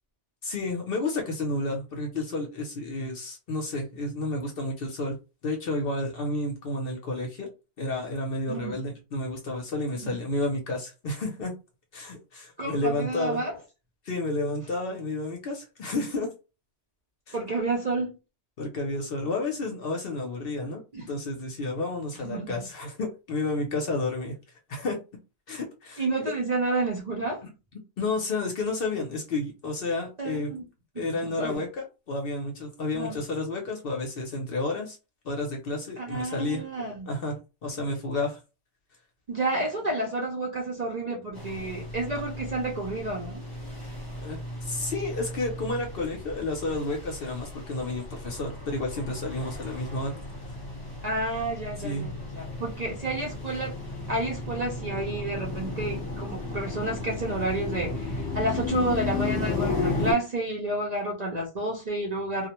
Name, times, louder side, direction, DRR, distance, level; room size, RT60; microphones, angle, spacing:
voice 1, 0.4-5.2 5.4-7.5 7.8-11.5 11.9-13.4 14.0-16.3 17.3-17.4 18.6-24.4 24.7-25.0 25.5-26.0 28.0-30.5 31.0-35.0 35.2-36.6 37.1-38.4 44.2-50.1 51.8-52.1, left 2 dB, 55° left, 0.7 m, -31 dB
voice 2, 12.6-13.5 17.3-18.2 20.9-21.1 22.2-22.6 26.0-27.4 30.2-30.7 31.0-31.6 32.9-33.2 36.0-37.1 39.3-43.4 51.0-53.7 54.1-62.5, right 2 dB, 45° right, 0.5 m, -30 dB
sound 1, 41.3-60.1, left 3 dB, 20° left, 1.0 m, -34 dB
2.4 x 2.1 x 2.9 m
omnidirectional pair, 1.3 m